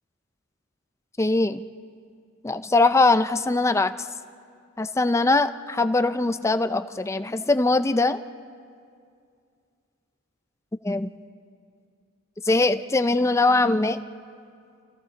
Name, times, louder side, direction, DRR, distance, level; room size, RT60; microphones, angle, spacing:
voice 1, 1.2-1.6 2.4-4.1 4.8-8.2 10.8-11.1 12.4-14.0, left 2 dB, 15° left, 11 dB, 0.4 m, -21 dB
29.5 x 28.0 x 4.0 m, 2.4 s
head